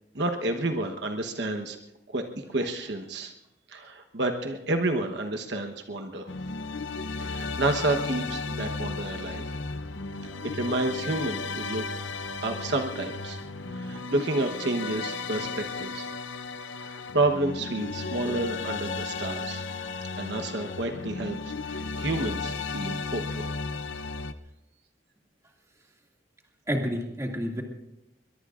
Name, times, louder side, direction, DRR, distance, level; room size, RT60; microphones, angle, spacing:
voice 1, 0.1-1.8 2.1-3.3 3.7-6.3 7.2-9.6 10.4-11.8 12.1-13.4 13.7-16.1 16.8-19.6 20.2-23.5, right 2 dB, 65° right, 4 dB, 1.1 m, -30 dB
sound 1, 6.3-24.3, left 4 dB, 75° left, 0.7 m, -34 dB
voice 2, 26.7-27.6, equal, 15° right, 0 dB, 2.3 m, -30 dB
22.5 x 22.5 x 2.5 m, 0.88 s
head